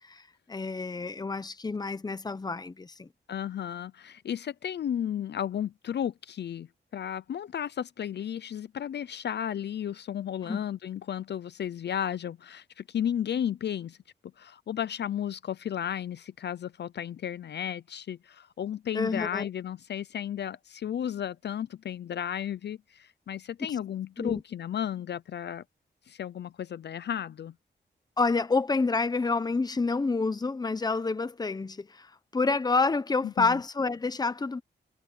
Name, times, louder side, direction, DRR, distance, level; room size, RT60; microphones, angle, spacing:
voice 1, 0.5-3.1 10.4-10.7 18.9-19.5 24.2-24.4 28.2-34.6, left 4 dB, 20° left, 0.8 m, -28 dB
voice 2, 3.3-6.7 6.9-14.0 14.4-25.6 26.1-27.5 33.2-33.6, left 9 dB, 65° left, 0.5 m, -33 dB
wide cardioid pair, 140°, 19 cm